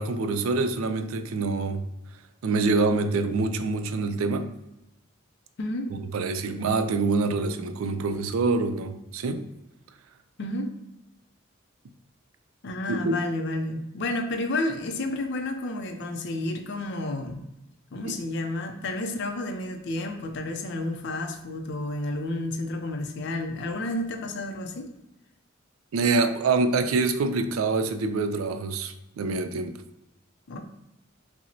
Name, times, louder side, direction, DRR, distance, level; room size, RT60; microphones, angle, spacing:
voice 1, 0.0-1.8 2.4-4.5 5.9-9.4 12.9-13.0 18.0-18.1 25.9-29.8, right 3 dB, 85° right, 9 dB, 0.4 m, -26 dB
voice 2, 5.6-5.9 10.4-10.7 12.6-17.4 17.9-24.9 30.5-30.6, left 2 dB, 55° left, 4 dB, 0.4 m, -31 dB
5.7 x 2.0 x 2.6 m, 0.89 s
head